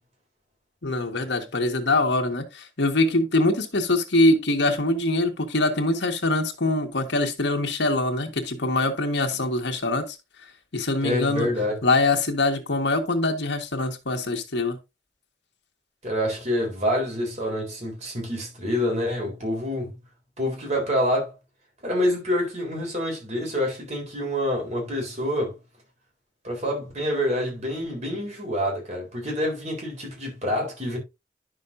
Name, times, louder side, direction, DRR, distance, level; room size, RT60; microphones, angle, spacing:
voice 1, 0.8-10.2 10.7-11.5 11.8-14.7, left 2 dB, 80° left, 1.5 m, -23 dB
voice 2, 11.0-11.8 16.0-20.0 20.4-21.3 21.8-25.6 26.4-31.0, left 1 dB, 40° right, 3.7 m, -27 dB
11.0 x 6.4 x 2.6 m
head